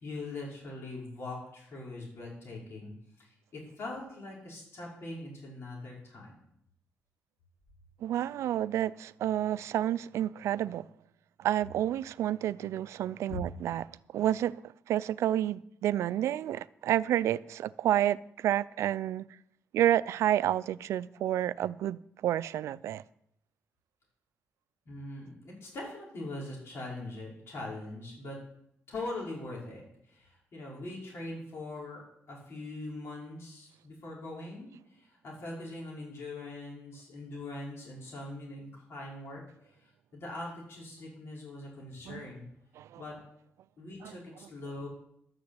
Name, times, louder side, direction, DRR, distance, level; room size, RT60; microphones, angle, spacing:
voice 1, 0.0-2.9 3.2-6.3 13.3-13.4 24.9-28.4 28.9-32.0 32.3-39.4 39.8-42.5 43.0-43.2 43.8-44.9, left 2 dB, 60° left, 5.3 m, -42 dB
voice 2, 8.0-10.9 11.4-13.9 14.1-14.5 14.9-19.3 19.7-23.0 42.1-42.2 42.8-43.0 44.0-44.1, right 12 dB, 85° right, 0.4 m, -29 dB
12.0 x 6.7 x 8.1 m
cardioid pair, 70°, 5 cm